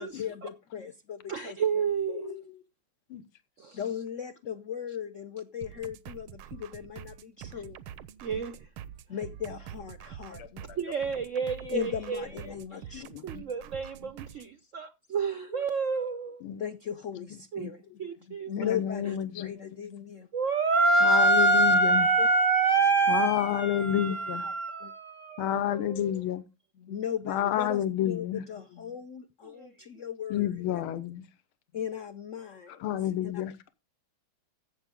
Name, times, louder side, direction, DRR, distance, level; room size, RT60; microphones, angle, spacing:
voice 1, 0.0-2.6 3.7-7.8 9.1-10.6 11.5-13.0 14.0-14.2 15.5-15.7 16.1-16.3 16.6-20.3 22.2-22.3 24.4-24.5 24.8-24.9 25.5-25.6 26.8-30.8 31.7-32.9 33.2-33.3, left 8 dB, 60° left, 0.8 m, -38 dB
voice 2, 1.3-2.3 3.6-3.8 8.2-8.6 10.8-12.2 13.2-16.4 17.5-17.7 18.0-18.5 20.3-26.2 29.6-29.7, right 3 dB, 70° right, 0.7 m, -27 dB
sound 1, 5.6-14.5, right 10 dB, 85° right, 1.6 m, -46 dB
voice 3, 10.3-10.8 12.9-13.4 16.4-16.6 17.6-17.7 18.6-19.5 21.0-22.1 23.1-24.4 25.4-26.4 27.3-28.4 30.3-31.3 32.8-33.7, left 11 dB, 85° left, 1.7 m, -30 dB
14.0 x 8.3 x 3.7 m
omnidirectional pair, 2.3 m